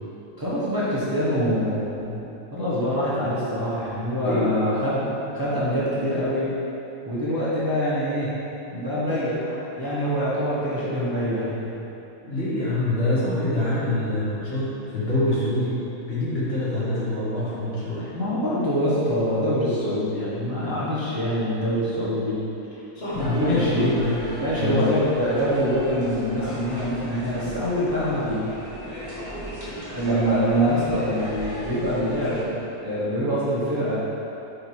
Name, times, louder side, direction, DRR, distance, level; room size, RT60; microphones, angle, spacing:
voice 1, 0.4-2.2 2.5-5.1 5.3-6.5 7.0-8.3 8.7-11.7 18.1-22.5 23.1-23.9 24.4-28.7 29.9-34.0, equal, 15° right, -10 dB, 1.0 m, -25 dB
voice 2, 4.2-4.5 12.2-18.1 22.9-24.2 24.6-24.9, left 1 dB, 45° left, -10 dB, 1.7 m, -25 dB
sound 1, 23.1-32.4, equal, 15° left, 1.0 m, -36 dB
5.1 x 4.4 x 4.5 m, 2.9 s
omnidirectional pair, 1.5 m